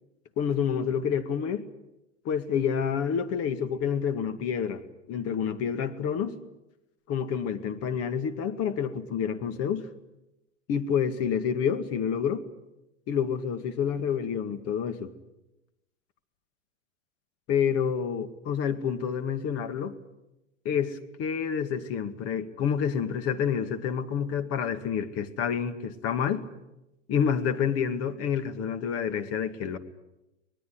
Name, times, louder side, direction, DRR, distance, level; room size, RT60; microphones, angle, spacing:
voice 1, 0.4-1.6 2.2-4.8 5.1-6.4 7.1-9.9 10.7-12.4 13.1-15.1 17.5-19.9 20.7-26.5 27.1-29.8, left 7 dB, 40° left, 10 dB, 2.1 m, -28 dB
24.5 x 20.0 x 9.7 m, 0.93 s
hypercardioid pair, 105°, 38 cm